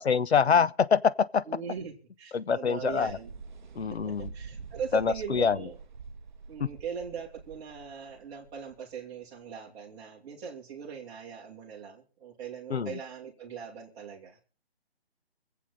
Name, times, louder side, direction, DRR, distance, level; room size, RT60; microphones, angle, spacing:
voice 1, 0.1-1.4 2.3-3.1 3.8-4.3 4.9-5.6 12.7-13.0, left 6 dB, 80° left, 0.8 m, -25 dB
voice 2, 1.5-3.3 4.0-5.8 6.5-14.4, right 7 dB, 10° right, 1.9 m, -40 dB
sound 1, 2.9-9.5, right 5 dB, 45° right, 0.8 m, -46 dB
25.0 x 8.4 x 4.0 m
hypercardioid pair, 165°, 32 cm